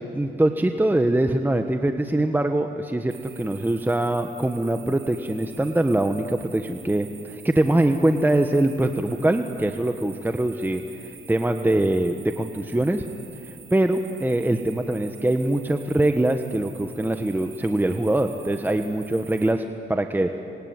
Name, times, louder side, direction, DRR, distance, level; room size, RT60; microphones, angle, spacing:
voice 1, 0.1-13.0 13.4-19.6 19.9-20.3, right 1 dB, 10° right, 6 dB, 1.3 m, -23 dB
sound 1, 3.1-19.5, right 8 dB, 75° right, 4.9 m, -47 dB
26.5 x 22.0 x 9.7 m, 2.5 s
cardioid pair, 90°, 20 cm